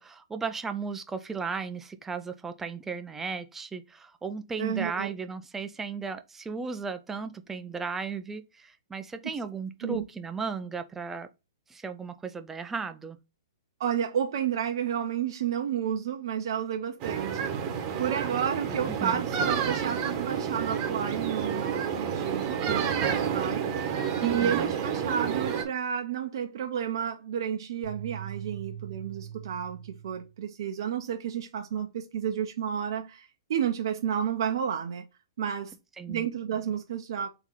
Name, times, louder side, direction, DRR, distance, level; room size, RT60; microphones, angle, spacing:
voice 1, 0.0-11.3 11.7-13.2 18.9-19.2 24.2-24.7 36.0-36.3, right 5 dB, 10° right, 0.5 m, -35 dB
voice 2, 4.6-5.1 9.8-10.1 13.8-35.1 35.4-35.7 36.1-37.3, right 8 dB, 60° right, 0.7 m, -31 dB
sound 1, 17.0-25.6, right 7 dB, 35° right, 1.1 m, -29 dB
sound 2, 27.8-30.3, right 10 dB, 65° left, 2.2 m, -41 dB
3.7 x 2.9 x 4.4 m
hypercardioid pair, 125°, 3 cm